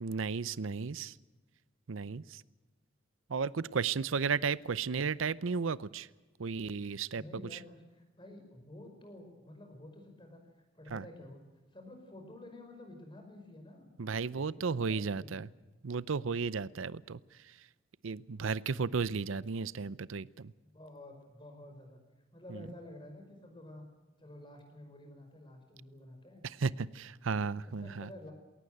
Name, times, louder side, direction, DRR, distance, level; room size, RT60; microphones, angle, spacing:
voice 1, 0.0-1.1 1.9-2.4 3.3-6.1 6.4-7.2 10.9-11.0 14.0-15.5 15.8-17.2 18.0-20.5 26.6-28.1, right 5 dB, 85° right, 19 dB, 0.6 m, -34 dB
voice 2, 7.1-11.4 11.7-13.9 14.3-15.5 20.7-22.0 22.3-23.9 24.2-26.4 27.6-28.3, left 1 dB, 25° left, 4 dB, 5.3 m, -51 dB
21.0 x 18.5 x 8.0 m, 1.2 s
head